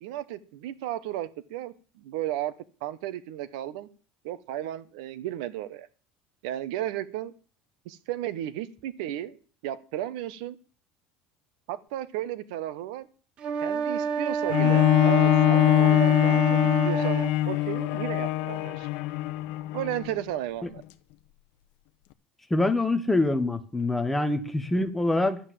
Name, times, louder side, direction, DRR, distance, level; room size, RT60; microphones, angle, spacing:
voice 1, 0.0-2.5 2.8-3.9 4.2-5.9 6.4-7.3 7.8-9.4 9.6-10.6 11.7-13.1 13.6-18.9 19.7-20.8, right 12 dB, 80° right, 1.2 m, -34 dB
sound 1, 13.4-17.4, right 5 dB, 30° right, 0.9 m, -29 dB
Bowed string instrument, 14.5-20.1 20.8-20.9, left 14 dB, 60° left, 0.9 m, -23 dB
voice 2, 22.5-25.4, left 2 dB, 5° left, 1.0 m, -25 dB
12.0 x 8.8 x 7.6 m
cardioid pair, 175°, 4 cm